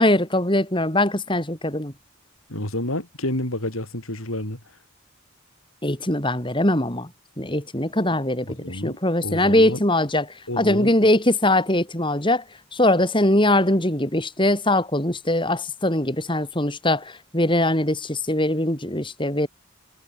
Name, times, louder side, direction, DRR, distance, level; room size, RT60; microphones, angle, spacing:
voice 1, 0.0-1.9 5.8-7.1 7.4-10.3 10.6-12.4 12.7-19.5, left 1 dB, 25° left, 5.7 m, -21 dB
voice 2, 2.5-4.6 8.5-9.0 9.2-9.8 10.5-10.9, left 1 dB, 85° left, 6.5 m, -29 dB
head